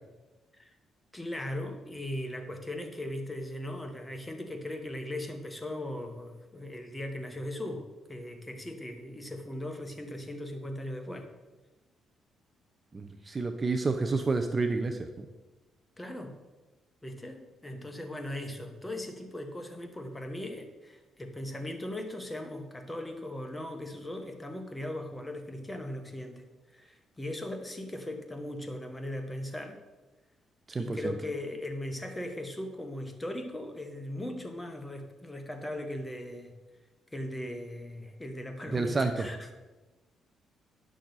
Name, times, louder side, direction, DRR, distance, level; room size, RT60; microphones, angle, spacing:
voice 1, 1.1-11.3 16.0-16.3 17.0-26.4 26.7-29.8 30.8-36.5 37.1-39.5, left 1 dB, 10° left, 5 dB, 1.2 m, -38 dB
voice 2, 12.9-15.3 30.7-31.1 38.7-39.3, right 3 dB, 30° right, 7 dB, 0.6 m, -29 dB
10.0 x 6.2 x 4.0 m, 1.2 s
cardioid pair, 90°, 0 cm